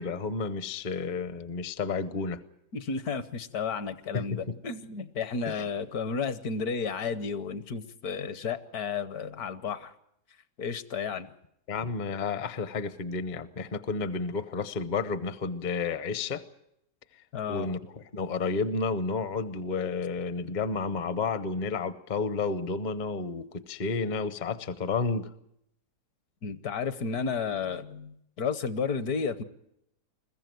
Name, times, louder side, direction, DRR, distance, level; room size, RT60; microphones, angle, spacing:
voice 1, 0.0-2.4 4.1-4.6 5.4-5.6 11.7-16.4 17.5-25.3, left 4 dB, 40° left, 13 dB, 0.7 m, -31 dB
voice 2, 2.7-9.9 10.6-11.3 17.3-17.8 26.4-29.4, left 5 dB, 65° left, 13 dB, 1.4 m, -32 dB
21.5 x 15.0 x 9.3 m, 0.78 s
omnidirectional pair, 1.8 m